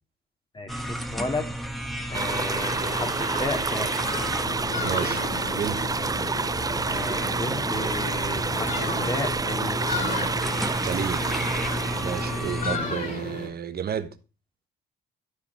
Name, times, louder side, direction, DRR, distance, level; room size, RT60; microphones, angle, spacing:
voice 1, 0.5-1.5 2.1-4.2 6.8-8.7 9.0-9.9, left 2 dB, 25° left, 2.2 m, -33 dB
sound 1, 0.7-12.8, right 1 dB, ahead, 1.4 m, -34 dB
sound 2, 2.1-13.5, left 3 dB, 45° left, 5.1 m, -34 dB
sound 3, 2.1-12.6, right 4 dB, 20° right, 0.5 m, -29 dB
voice 2, 4.8-5.2 5.5-5.9 10.8-11.3 12.0-14.2, right 8 dB, 50° right, 1.1 m, -31 dB
12.5 x 5.1 x 4.6 m
cardioid pair, 90°, 20 cm